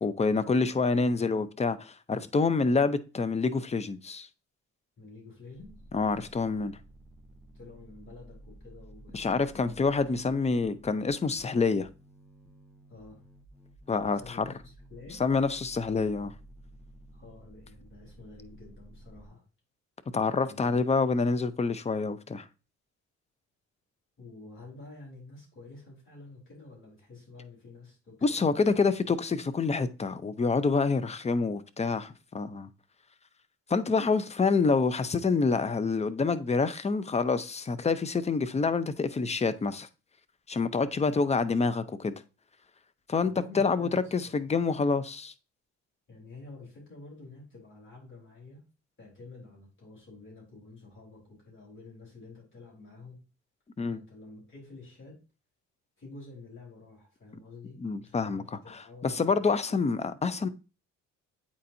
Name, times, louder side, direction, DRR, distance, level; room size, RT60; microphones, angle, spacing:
voice 1, 0.0-4.3 5.9-6.8 9.1-11.9 13.9-14.4 15.2-16.3 20.1-22.5 28.2-32.7 33.7-39.9 40.5-42.1 43.1-45.3 53.8-54.0 57.8-58.6 59.0-60.5, left 4 dB, 20° left, 0.6 m, -27 dB
voice 2, 5.0-5.8 7.5-9.9 12.9-13.2 14.1-15.2 17.1-19.4 20.5-20.8 24.2-29.1 43.2-44.5 46.1-48.6 49.0-53.2 53.9-55.2 56.0-60.2, left 3 dB, 40° left, 3.5 m, -50 dB
sound 1, 5.5-19.3, right 1 dB, 5° left, 1.1 m, -53 dB
8.5 x 4.2 x 2.7 m
cardioid pair, 90°, 30 cm